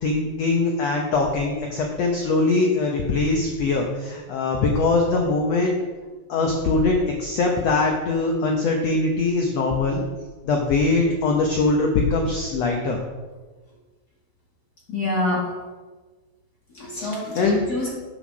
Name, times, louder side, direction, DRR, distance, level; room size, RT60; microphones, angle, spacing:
voice 1, 0.0-5.7 6.3-10.0 10.4-13.0 16.9-17.1 17.4-17.6, left 3 dB, 80° left, 1 dB, 1.4 m, -22 dB
voice 2, 14.9-15.5 16.7-17.9, left 2 dB, 35° left, -5 dB, 1.8 m, -26 dB
7.2 x 7.1 x 6.2 m, 1.3 s
omnidirectional pair, 4.3 m